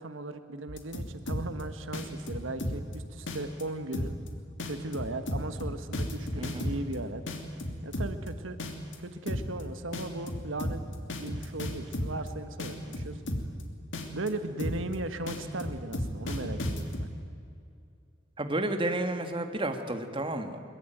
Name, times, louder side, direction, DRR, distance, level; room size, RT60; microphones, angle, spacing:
voice 1, 0.0-4.2 4.6-7.2 7.8-8.6 9.0-10.8 11.2-13.2 14.1-17.1, right 2 dB, 80° right, 9 dB, 1.4 m, -37 dB
sound 1, 0.7-1.6 1.9-2.9 3.3-3.6 3.9-4.3 4.6-6.9 7.3-8.3 8.6-8.9 9.3-9.6 9.9-12.3 12.6-13.6 13.9-14.3 14.6-14.9 15.3-17.1, left 1 dB, 65° left, 2.9 m, -33 dB
voice 2, 6.4-6.7 18.4-20.6, right 1 dB, 25° right, 6 dB, 1.7 m, -31 dB
22.5 x 22.0 x 9.1 m, 2.5 s
head